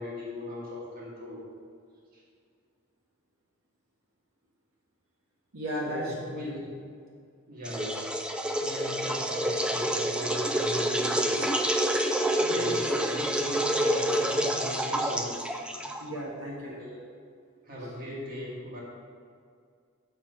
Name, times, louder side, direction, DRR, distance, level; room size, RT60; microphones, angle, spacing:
voice 1, 0.0-1.4 5.8-6.7 7.5-11.4 12.3-15.4 16.6-17.1 17.7-18.8, left 1 dB, 45° right, -4 dB, 1.7 m, -39 dB
voice 2, 5.5-6.6 12.3-13.0 16.0-16.7, equal, 75° right, -4 dB, 1.5 m, -35 dB
sound 1, 7.6-16.2, right 1 dB, 5° right, 0.4 m, -28 dB
6.4 x 5.9 x 5.5 m, 2.2 s
head